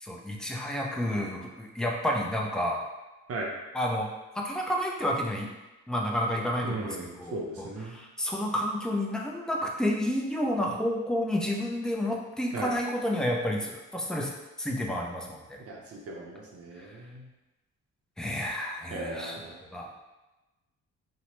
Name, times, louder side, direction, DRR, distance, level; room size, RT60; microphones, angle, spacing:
voice 1, 0.0-2.8 3.7-4.1 4.3-5.5 5.9-14.3 14.6-15.6 16.8-17.0 18.2-19.4 19.7-19.9, left 1 dB, ahead, -1 dB, 0.4 m, -30 dB
voice 2, 6.6-8.0 12.5-12.7 15.7-17.3 18.9-19.6, right 2 dB, 50° right, -1 dB, 0.6 m, -37 dB
2.8 x 2.1 x 3.0 m, 1.1 s
cardioid pair, 90°, 30 cm